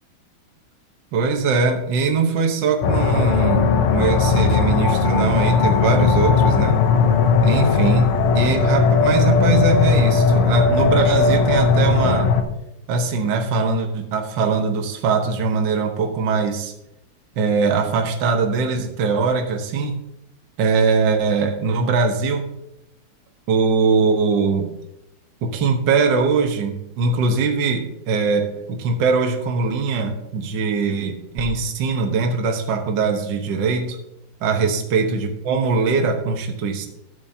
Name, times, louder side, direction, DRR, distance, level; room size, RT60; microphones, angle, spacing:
voice 1, 1.1-6.8 7.4-12.3 12.9-16.7 17.4-20.0 20.6-22.4 23.5-24.7 25.4-34.0 34.4-36.9, right 4 dB, 60° right, 3 dB, 1.6 m, -21 dB
sound 1, 2.8-12.4, left 5 dB, 85° left, 1.7 m, -17 dB
12.5 x 8.4 x 2.7 m, 0.86 s
omnidirectional pair, 2.4 m